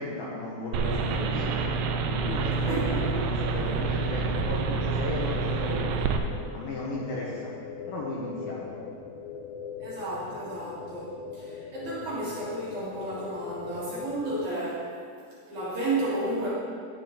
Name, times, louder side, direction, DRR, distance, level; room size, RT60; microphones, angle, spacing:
voice 1, 0.0-1.8 2.0-5.9 6.5-7.5 7.9-8.8, left 2 dB, 65° left, -5 dB, 2.5 m, -35 dB
sound 1, 0.7-6.2, right 4 dB, 85° right, 2.5 m, -28 dB
voice 2, 2.7-3.2 9.8-14.9 15.5-16.5, right 2 dB, 50° right, -8 dB, 2.7 m, -32 dB
sound 2, 4.8-14.5, left 5 dB, 90° left, 2.2 m, -41 dB
11.5 x 9.8 x 3.9 m, 2.2 s
omnidirectional pair, 5.4 m